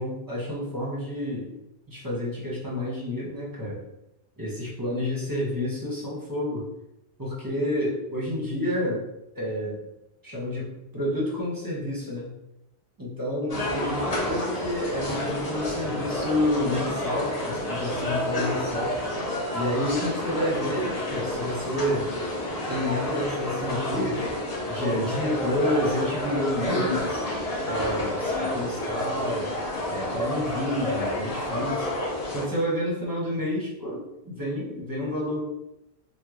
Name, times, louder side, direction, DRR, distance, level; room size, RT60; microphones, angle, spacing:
voice 1, 0.0-1.5 1.9-3.8 4.4-6.6 7.2-9.0 9.3-9.8 10.2-12.3 13.0-19.0 19.5-22.1 22.7-24.3 24.7-27.2 27.7-29.5 29.9-31.9 32.3-35.4, left 1 dB, 20° right, -5 dB, 0.8 m, -29 dB
sound 1, 13.5-32.4, left 1 dB, 40° left, 0.9 m, -29 dB
3.1 x 2.2 x 3.6 m, 0.88 s
omnidirectional pair, 1.1 m